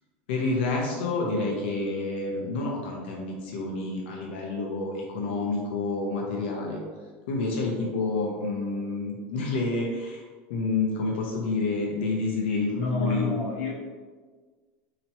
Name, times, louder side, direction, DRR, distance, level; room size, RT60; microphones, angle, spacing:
voice 1, 0.3-6.8 7.3-10.2 10.5-13.4, left 3 dB, 85° left, -1 dB, 0.7 m, -29 dB
voice 2, 12.4-13.7, left 3 dB, 60° left, -7 dB, 1.1 m, -30 dB
4.3 x 2.9 x 2.9 m, 1.5 s
supercardioid pair, 150°, 6 cm